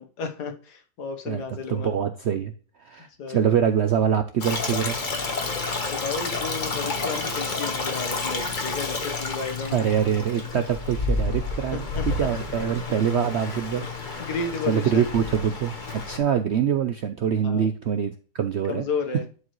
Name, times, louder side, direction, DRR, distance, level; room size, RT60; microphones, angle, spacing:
voice 1, 0.0-2.0 3.2-3.5 5.9-9.9 11.7-12.1 14.2-15.0 17.4-17.7 18.7-19.3, left 4 dB, 75° left, 6 dB, 1.8 m, -32 dB
voice 2, 1.7-2.5 2.8-5.0 9.7-13.9 14.2-14.3 14.7-18.8, right 8 dB, 70° right, 8 dB, 0.6 m, -24 dB
Stream, 4.4-16.2, left 3 dB, 30° left, 1.2 m, -30 dB
11.5 x 4.8 x 3.1 m, 0.38 s
omnidirectional pair, 1.8 m